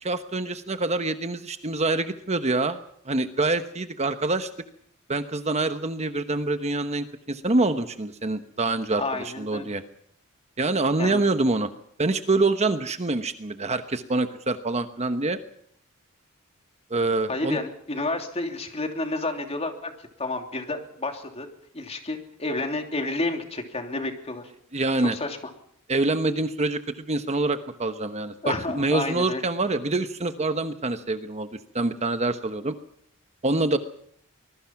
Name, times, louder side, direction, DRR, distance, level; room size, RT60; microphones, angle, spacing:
voice 1, 0.0-2.8 3.1-4.5 5.1-9.8 10.6-11.7 12.0-15.4 16.9-17.6 24.7-25.2 25.9-31.5 31.7-32.8 33.4-33.8, right 2 dB, 30° right, 9 dB, 1.1 m, -25 dB
voice 2, 9.0-9.7 11.0-11.2 17.3-19.9 20.2-21.5 21.7-24.5 25.1-25.4 28.4-29.4, left 2 dB, 30° left, 5 dB, 3.0 m, -30 dB
25.0 x 21.0 x 5.9 m, 0.67 s
head